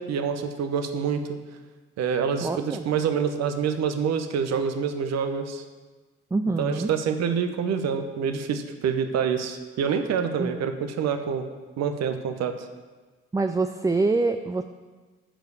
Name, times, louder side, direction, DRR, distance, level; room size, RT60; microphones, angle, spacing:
voice 1, 0.0-1.4 2.0-5.6 6.6-11.5 11.8-12.5, right 7 dB, 55° right, 7 dB, 0.8 m, -26 dB
voice 2, 2.4-2.9 6.3-6.9 10.4-10.6 13.3-14.6, right 3 dB, 10° right, 7 dB, 0.4 m, -25 dB
8.9 x 4.9 x 6.9 m, 1.3 s
hypercardioid pair, 45°, 31 cm